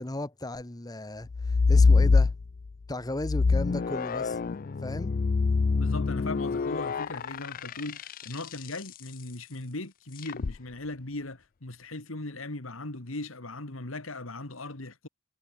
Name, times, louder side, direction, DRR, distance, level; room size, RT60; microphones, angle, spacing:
voice 1, 0.0-2.3 2.9-4.4 4.8-5.1, left 1 dB, 20° left, 1.0 m, -35 dB
sound 1, 1.3-2.7 3.2-8.7 10.2-10.6, left 4 dB, 45° left, 0.4 m, -25 dB
voice 2, 5.7-15.1, left 2 dB, 80° left, 2.4 m, -38 dB
head